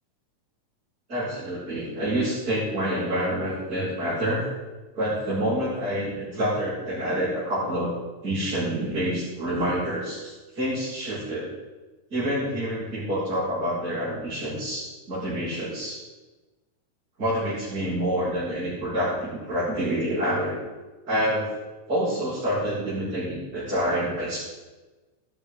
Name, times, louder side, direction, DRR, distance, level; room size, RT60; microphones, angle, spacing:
voice 1, 1.1-4.4 5.0-7.9 8.2-11.5 12.1-16.0 17.2-20.6 21.1-21.5 21.9-24.4, equal, 30° right, -11 dB, 7.0 m, -27 dB
19.5 x 12.5 x 3.9 m, 1.2 s
omnidirectional pair, 3.6 m